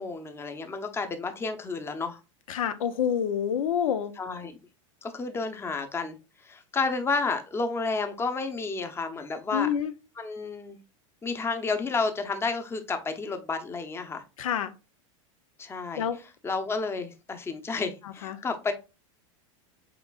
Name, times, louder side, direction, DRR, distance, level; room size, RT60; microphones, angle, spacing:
voice 1, 0.0-2.2 4.2-4.6 5.0-6.2 6.4-9.7 10.2-10.8 11.2-14.2 15.6-16.0 16.4-18.7, left 4 dB, 15° left, 0.7 m, -31 dB
voice 2, 2.5-4.1 9.5-9.9 14.4-14.7 16.0-16.2 18.0-18.4, left 8 dB, 90° left, 0.6 m, -27 dB
5.8 x 3.7 x 2.4 m
supercardioid pair, 120°, 17 cm